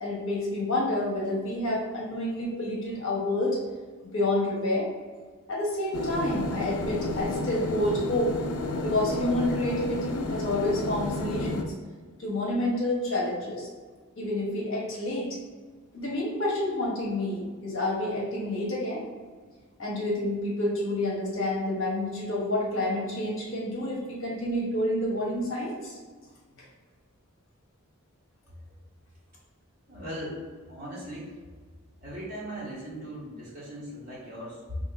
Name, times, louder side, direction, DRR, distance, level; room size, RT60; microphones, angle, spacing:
voice 1, 0.0-3.6 4.1-4.9 5.5-8.3 8.8-11.7 12.2-13.7 14.2-15.3 15.9-19.1 19.8-26.0, left 1 dB, 65° left, -5 dB, 1.1 m, -29 dB
sound 1, 5.9-11.6, left 2 dB, 85° left, 0.4 m, -32 dB
voice 2, 29.9-30.4 30.7-31.4 32.0-34.8, equal, 45° right, -8 dB, 1.5 m, -38 dB
2.9 x 2.8 x 4.0 m, 1.5 s
head